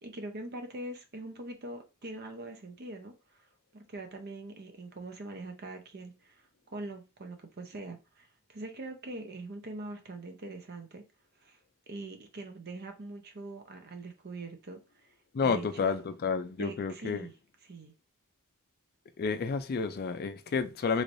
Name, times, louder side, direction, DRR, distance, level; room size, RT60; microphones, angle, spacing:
voice 1, 0.0-3.1 3.7-6.4 6.7-11.0 11.4-11.6 11.9-14.8 15.4-16.0 16.6-17.3 17.6-17.9, right 2 dB, 45° right, 0.7 m, -43 dB
voice 2, 15.3-17.3 19.2-21.0, left 5 dB, 45° left, 0.4 m, -30 dB
3.1 x 3.1 x 2.6 m
head